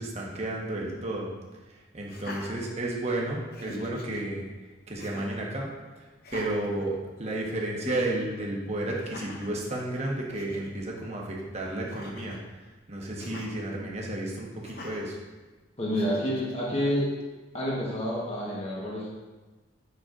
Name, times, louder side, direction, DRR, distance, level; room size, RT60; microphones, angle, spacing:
voice 1, 0.0-1.3 1.7-4.5 4.9-5.7 6.0-12.4 12.9-15.2, right 1 dB, 35° right, -2 dB, 1.2 m, -32 dB
Laughter, 2.0-3.1 3.5-4.2 5.0-5.5 6.2-7.4 7.8-8.1 9.0-9.6 10.1-10.2 10.3-10.7 11.9-12.4 13.2-13.5 14.6-15.1 15.9-16.5, left 1 dB, 50° left, 0.9 m, -43 dB
voice 2, 15.8-17.1 17.5-19.1, equal, 30° left, -6 dB, 1.2 m, -29 dB
8.9 x 6.1 x 2.5 m, 1.2 s
head